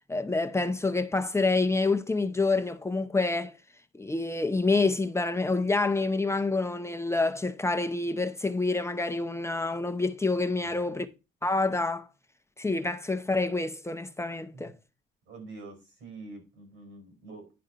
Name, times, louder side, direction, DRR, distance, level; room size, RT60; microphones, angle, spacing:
voice 1, 0.1-3.5 3.9-11.1 11.4-12.0 12.6-14.7, left 3 dB, 15° left, 0.7 m, -27 dB
voice 2, 10.6-11.0 14.5-14.7 15.3-17.5, right 3 dB, 90° right, 4.8 m, -46 dB
10.5 x 3.7 x 5.4 m
cardioid pair, 90°, 20 cm